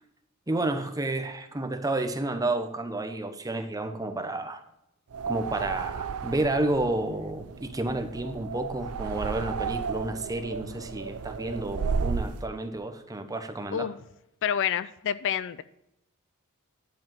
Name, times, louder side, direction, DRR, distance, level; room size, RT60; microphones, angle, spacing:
voice 1, 0.5-4.6 5.3-13.9, right 2 dB, 15° right, 7 dB, 0.9 m, -30 dB
sound 1, 5.1-12.4, right 5 dB, 85° right, 0.5 m, -33 dB
voice 2, 14.4-15.6, left 9 dB, 60° left, 16 dB, 0.4 m, -28 dB
10.5 x 4.9 x 5.7 m, 0.84 s
head